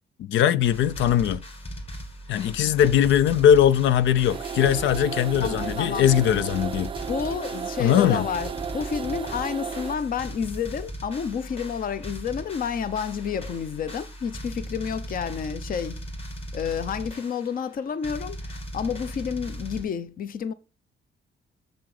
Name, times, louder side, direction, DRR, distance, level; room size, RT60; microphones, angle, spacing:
voice 1, 0.3-1.4 2.3-6.9 7.8-8.3, left 10 dB, 85° left, 0.6 m, -20 dB
sound 1, 0.6-19.8, equal, 30° left, 2.6 m, -38 dB
sound 2, 4.3-9.9, right 7 dB, 30° right, 0.3 m, -34 dB
voice 2, 5.4-6.1 7.1-16.0 16.5-20.5, left 7 dB, 50° left, 0.8 m, -30 dB
7.4 x 7.2 x 4.9 m
cardioid pair, 130°, 19 cm